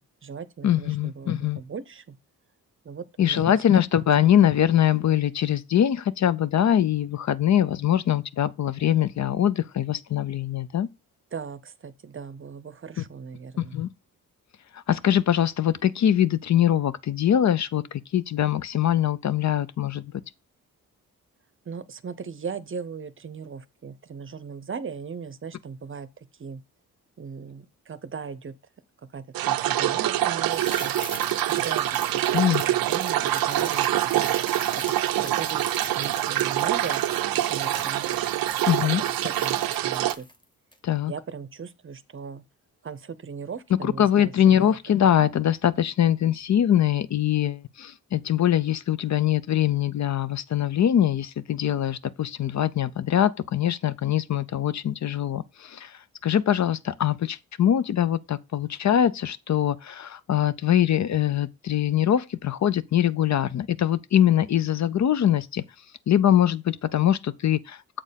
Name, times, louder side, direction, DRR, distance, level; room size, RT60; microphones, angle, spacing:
voice 1, 0.0-2.2 2.8-3.6 3.9-4.3 11.3-13.8 21.7-26.1 26.4-26.6 27.2-28.5 29.1-30.9 31.5-34.3 34.8-37.0 37.4-38.2 38.8-38.9 39.2-39.6 39.8-40.3 41.1-42.4 42.8-44.8, right 6 dB, 35° right, 0.7 m, -38 dB
voice 2, 0.6-1.6 3.2-10.9 13.6-13.9 14.7-20.0 32.3-32.6 38.7-39.0 40.8-41.1 43.8-65.6 66.1-67.8, left 10 dB, 50° left, 0.5 m, -23 dB
sound 1, 29.3-40.1, right 13 dB, 85° right, 0.6 m, -25 dB
sound 2, 30.5-40.4 40.7-40.8, left 1 dB, 15° left, 1.3 m, -42 dB
7.4 x 4.4 x 5.1 m
cardioid pair, 75°, 35 cm